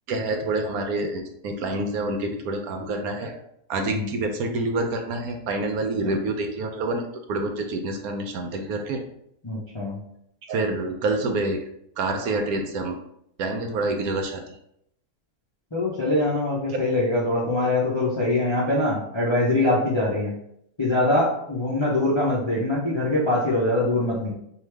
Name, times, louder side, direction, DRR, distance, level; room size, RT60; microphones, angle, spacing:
voice 1, 0.1-3.4 3.7-7.0 7.3-9.0 10.5-11.6 12.0-13.0 13.4-14.4, right 2 dB, 70° right, 4 dB, 1.0 m, -27 dB
voice 2, 9.4-10.0 15.7-20.3 20.8-24.3, left 2 dB, 35° left, -5 dB, 0.4 m, -23 dB
4.7 x 2.7 x 3.3 m, 0.74 s
omnidirectional pair, 1.8 m